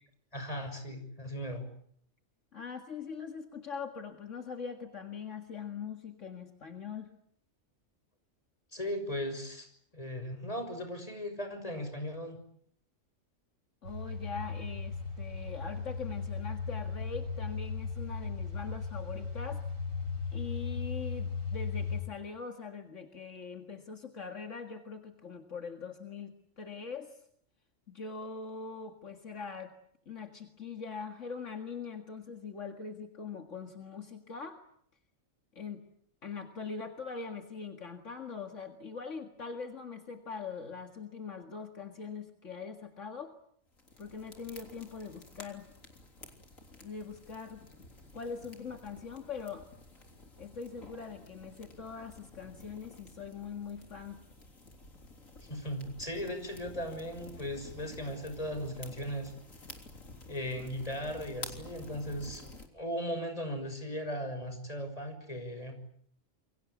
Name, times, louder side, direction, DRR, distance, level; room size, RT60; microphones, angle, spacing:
voice 1, 0.3-1.7 8.7-9.7 9.9-12.4 55.4-59.3 60.3-62.4 62.7-65.8, equal, 25° left, 6 dB, 6.3 m, -37 dB
voice 2, 2.5-7.1 13.8-19.6 20.3-27.2 27.9-29.7 30.1-34.6 35.6-35.8 36.2-43.4 44.0-45.7 46.7-47.6 48.1-49.6 50.4-54.2, left 5 dB, 65° left, 5 dB, 2.3 m, -42 dB
sound 1, 13.8-22.0, left 5 dB, 90° right, 6.5 m, -37 dB
sound 2, 43.7-62.7, left 2 dB, 85° left, 4.0 m, -51 dB
28.5 x 23.5 x 8.4 m, 0.66 s
omnidirectional pair, 1.4 m